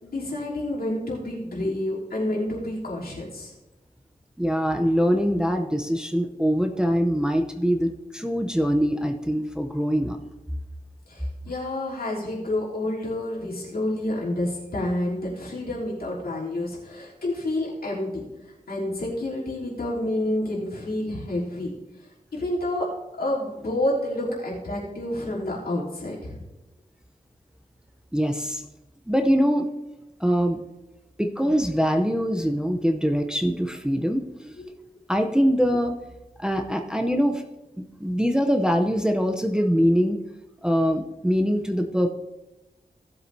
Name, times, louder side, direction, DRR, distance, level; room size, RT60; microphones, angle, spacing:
voice 1, 0.0-3.5 11.1-18.2 18.7-21.7 22.3-22.9 23.2-26.4 34.6-34.7, left 1 dB, 75° left, -6 dB, 3.2 m, -29 dB
voice 2, 4.4-10.2 28.1-28.6 29.1-29.7 30.2-30.6 31.2-34.5 35.1-36.0 36.4-37.4 37.8-40.2 40.6-42.1, equal, 5° right, 4 dB, 0.7 m, -23 dB
17.0 x 7.7 x 2.7 m, 1.0 s
wide cardioid pair, 110°, 16 cm